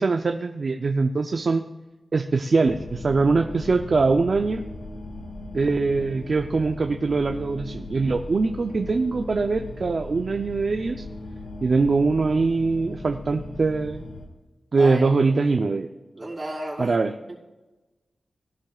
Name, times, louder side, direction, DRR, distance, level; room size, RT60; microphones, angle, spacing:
voice 1, 0.0-1.7 2.1-4.6 5.5-11.0 11.6-14.0 14.7-15.9 16.8-17.1, right 4 dB, 55° right, 6 dB, 0.6 m, -22 dB
sound 1, 2.6-14.3, left 2 dB, 75° left, 1.9 m, -38 dB
voice 2, 14.7-15.1 16.1-16.9 17.3-17.4, right 1 dB, 30° right, -7 dB, 3.9 m, -33 dB
18.0 x 11.5 x 2.4 m, 1.1 s
wide cardioid pair, 80°, 0 cm